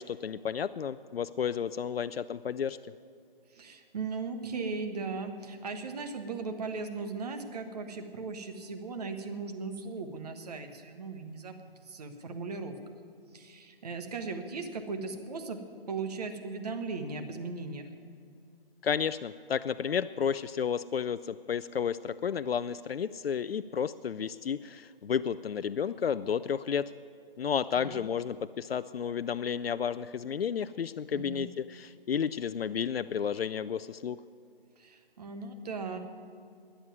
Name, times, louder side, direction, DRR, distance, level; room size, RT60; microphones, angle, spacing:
voice 1, 0.0-2.8 18.8-26.9 27.4-34.2, left 7 dB, 80° left, 14 dB, 0.5 m, -32 dB
voice 2, 3.5-12.9 13.3-15.6 15.9-17.9 27.8-28.0 31.1-31.5 34.8-36.0, right 4 dB, 40° right, 7 dB, 1.3 m, -38 dB
12.5 x 10.0 x 9.3 m, 2.3 s
figure-of-eight pair, 150°, 29 cm